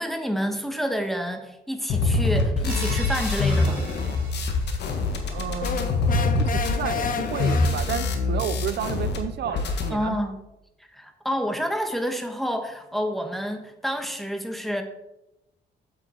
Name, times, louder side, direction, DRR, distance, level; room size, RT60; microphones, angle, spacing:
voice 1, 0.0-3.9 9.9-10.4 10.9-14.8, equal, ahead, 5 dB, 1.3 m, -29 dB
sound 1, 1.9-9.2 9.4-9.9, left 3 dB, 75° left, 1.6 m, -25 dB
sound 2, 2.7-5.2, right 3 dB, 50° right, 3.7 m, -39 dB
voice 2, 5.3-6.0 6.4-10.2, right 9 dB, 70° right, 12 dB, 0.5 m, -31 dB
sound 3, 5.6-8.2, left 6 dB, 50° left, 0.9 m, -31 dB
8.5 x 8.0 x 4.4 m, 0.92 s
cardioid pair, 110°, 18 cm